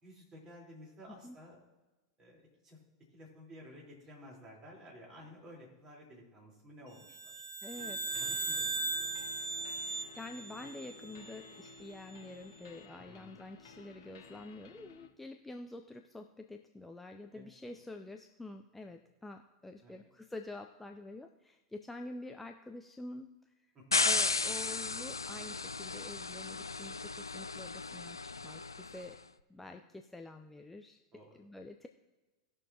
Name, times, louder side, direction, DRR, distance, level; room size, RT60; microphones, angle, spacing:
voice 1, 0.0-1.6 2.2-2.8 3.1-7.4 8.1-9.5 13.0-13.3 17.3-17.4 19.8-20.1 23.7-24.1 31.1-31.3, equal, 30° right, -3 dB, 3.8 m, -54 dB
sound 1, 7.0-11.6, right 3 dB, 75° right, 0.7 m, -38 dB
voice 2, 7.6-8.2 10.2-23.4 24.0-28.2 28.4-29.2 29.5-31.0 31.3-31.9, left 2 dB, 5° left, 5 dB, 0.6 m, -47 dB
sound 2, 7.7-15.1, left 5 dB, 60° left, 1.2 m, -55 dB
sound 3, 23.9-29.0, left 3 dB, 85° left, 0.4 m, -34 dB
19.0 x 6.3 x 2.9 m, 1.2 s
figure-of-eight pair, 90°, 2 cm